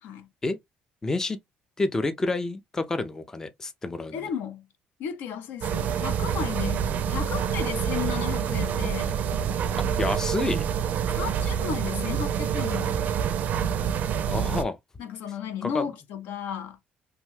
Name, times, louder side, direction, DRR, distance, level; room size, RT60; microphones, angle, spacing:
voice 1, 1.0-1.4 1.8-4.2 9.8-10.6 14.3-14.8 15.6-15.9, left 2 dB, 15° left, 0.4 m, -29 dB
voice 2, 4.1-4.7 5.0-9.2 11.1-13.2 15.0-16.8, left 8 dB, 80° left, 0.6 m, -34 dB
sound 1, 5.6-14.6, right 8 dB, 55° right, 0.4 m, -27 dB
2.7 x 2.2 x 3.1 m
cardioid pair, 120°, 3 cm